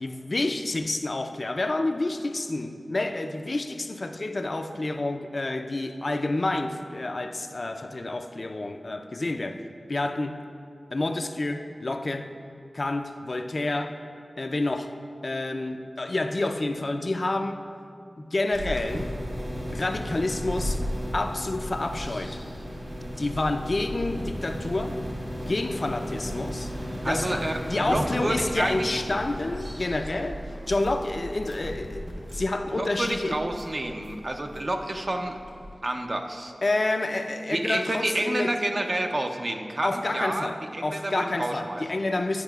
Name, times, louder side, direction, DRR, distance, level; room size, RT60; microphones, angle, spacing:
voice 1, 0.0-9.6 9.9-10.4 10.9-12.3 12.7-14.0 14.4-14.9 15.2-17.6 18.2-19.1 19.7-20.8 21.1-22.4 23.2-25.0 25.5-26.7 27.0-32.0 32.3-33.4 36.6-38.5 39.8-42.4, left 2 dB, 55° left, 0.3 m, -29 dB
sound 1, 18.5-35.7, equal, 75° right, 1.3 m, -35 dB
voice 2, 27.0-28.9 32.8-35.4 35.8-36.5 37.5-41.8, right 1 dB, 50° right, 0.5 m, -29 dB
10.5 x 4.7 x 2.3 m
cardioid pair, 45°, 0 cm